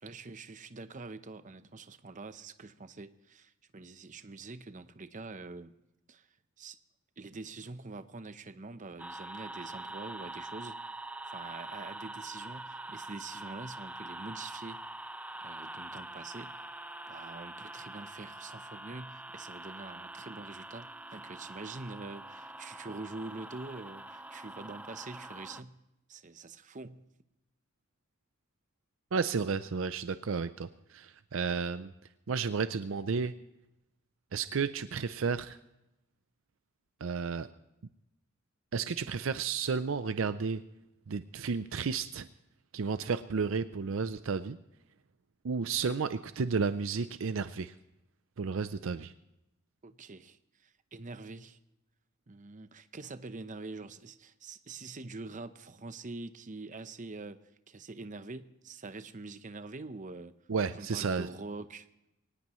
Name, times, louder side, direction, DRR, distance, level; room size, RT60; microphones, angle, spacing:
voice 1, 0.0-5.7 6.1-6.3 6.6-6.8 7.2-10.8 11.3-14.8 15.4-16.6 17.1-25.8 26.1-27.1 49.8-51.6 52.3-60.3 60.7-61.9, right 3 dB, 40° right, 0.8 m, -45 dB
sound 1, 9.0-25.6, right 2 dB, 5° right, 0.5 m, -44 dB
voice 2, 29.1-31.9 32.3-33.3 34.3-35.6 37.0-37.5 38.7-40.6 41.1-42.3 42.7-44.6 45.4-47.7 48.4-49.1 60.5-61.3, right 5 dB, 65° right, 0.5 m, -32 dB
23.5 x 18.5 x 3.1 m
head